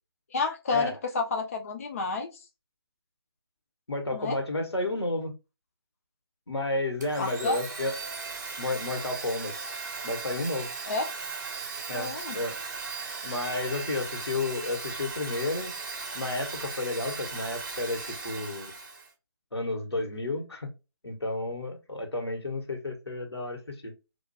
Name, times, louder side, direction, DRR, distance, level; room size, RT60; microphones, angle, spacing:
voice 1, 0.3-2.4 4.1-4.4 7.2-7.6 10.9-11.1 11.9-12.4, left 4 dB, 35° left, 4 dB, 0.3 m, -30 dB
voice 2, 3.9-5.3 6.5-7.9 8.6-9.5 10.0-10.7 11.9-12.6 13.2-15.7 16.1-18.7 19.5-20.7 21.0-23.9, left 2 dB, 90° left, 3 dB, 1.0 m, -32 dB
Domestic sounds home sounds, 7.0-19.1, right 4 dB, 45° right, 0.6 m, -37 dB
2.3 x 2.1 x 2.5 m, 0.27 s
figure-of-eight pair, 150°, 13 cm